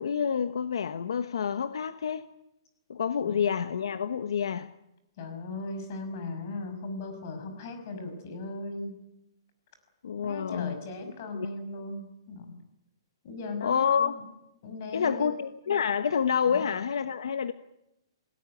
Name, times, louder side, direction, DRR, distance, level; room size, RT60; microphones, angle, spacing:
voice 1, 0.0-2.3 2.9-4.7 10.0-10.8 11.3-11.5 13.6-14.1 14.9-17.5, left 7 dB, 75° left, 1.2 m, -28 dB
voice 2, 5.2-8.9 10.2-12.5 13.2-14.2 14.6-15.3 16.5-16.7, left 2 dB, 35° left, 5.9 m, -38 dB
26.5 x 18.5 x 9.9 m
hypercardioid pair, 180°, 3 cm